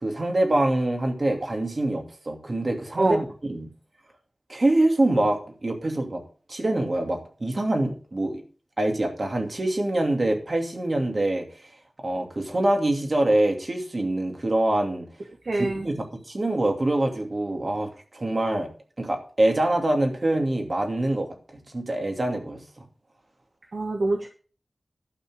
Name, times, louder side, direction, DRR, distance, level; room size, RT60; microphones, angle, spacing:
voice 1, 0.0-3.2 3.5-3.7 4.5-6.2 6.5-8.4 8.8-11.5 12.0-15.1 15.8-18.7 19.0-22.8, right 1 dB, 50° right, 3 dB, 2.6 m, -25 dB
voice 2, 15.4-15.8 23.7-24.3, right 2 dB, 70° right, 2 dB, 1.3 m, -25 dB
11.5 x 5.9 x 6.3 m, 0.40 s
wide cardioid pair, 70°, 0 cm